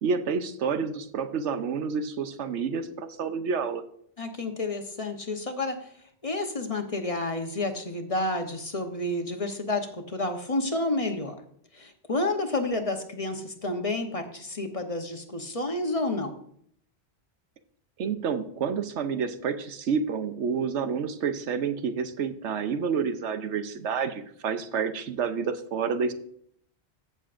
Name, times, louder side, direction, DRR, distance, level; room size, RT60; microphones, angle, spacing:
voice 1, 0.0-3.8 18.0-26.1, right 6 dB, 90° right, 9 dB, 1.1 m, -29 dB
voice 2, 4.2-5.9 6.2-11.3 11.7-16.4, left 2 dB, 35° left, 5 dB, 1.0 m, -30 dB
15.0 x 6.7 x 2.5 m, 0.66 s
omnidirectional pair, 1.2 m